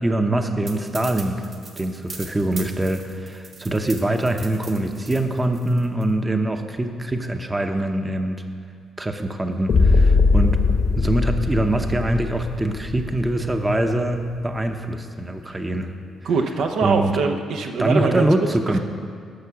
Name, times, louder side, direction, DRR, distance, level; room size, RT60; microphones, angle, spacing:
voice 1, 0.0-1.4 1.8-8.4 9.0-10.6 10.9-15.9 16.8-17.2 17.8-18.8, right 1 dB, 15° right, 6 dB, 0.8 m, -23 dB
sound 1, 0.7-6.0, right 4 dB, 45° right, 1.5 m, -40 dB
sound 2, 9.7-13.7, left 4 dB, 60° left, 1.2 m, -20 dB
voice 2, 16.2-18.3, right 5 dB, 75° right, 3 dB, 0.8 m, -22 dB
11.5 x 5.8 x 7.1 m, 2.2 s
cardioid pair, 90°, 0 cm